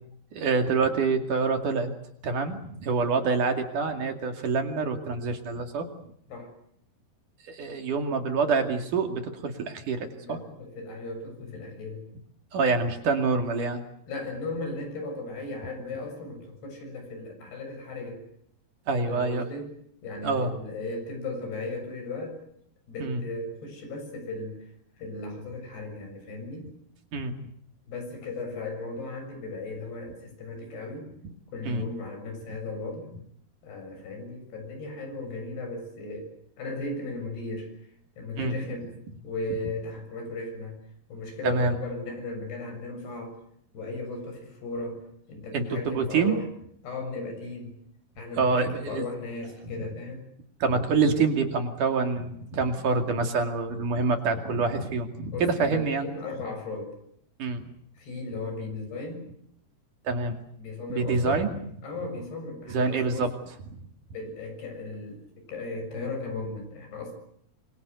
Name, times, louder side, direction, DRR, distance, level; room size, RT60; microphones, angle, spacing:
voice 1, 0.3-1.9 2.2-5.9 7.5-10.4 12.5-13.8 18.9-19.4 20.2-20.5 23.0-23.2 27.1-27.3 31.7-31.9 38.4-38.5 41.4-41.8 45.5-46.4 48.4-49.0 50.6-56.1 57.4-57.7 60.1-60.4 60.9-61.5 62.7-63.3, right 4 dB, 55° right, 6 dB, 3.6 m, -26 dB
voice 2, 10.2-12.0 14.1-18.2 19.1-19.7 20.0-22.4 22.9-24.6 25.0-26.7 27.9-31.1 31.5-33.1 33.6-36.3 36.6-37.7 38.2-38.9 39.2-40.8 41.1-43.4 43.7-46.4 46.8-47.8 48.2-50.2 55.3-57.0 58.0-59.2 60.6-61.5 61.8-63.3 64.1-67.1, left 2 dB, 75° left, 5 dB, 9.0 m, -36 dB
26.5 x 23.0 x 8.2 m, 0.70 s
omnidirectional pair, 4.8 m